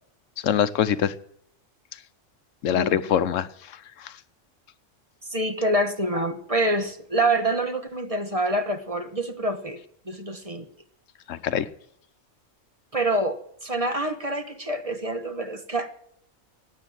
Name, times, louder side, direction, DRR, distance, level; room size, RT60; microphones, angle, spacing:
voice 1, 0.4-1.1 2.6-3.5 4.0-4.1 11.3-11.7, left 9 dB, 85° left, 14 dB, 1.1 m, -23 dB
voice 2, 5.3-10.7 12.9-15.9, right 1 dB, 30° right, 8 dB, 1.1 m, -26 dB
15.5 x 9.5 x 7.6 m, 0.70 s
omnidirectional pair, 1.3 m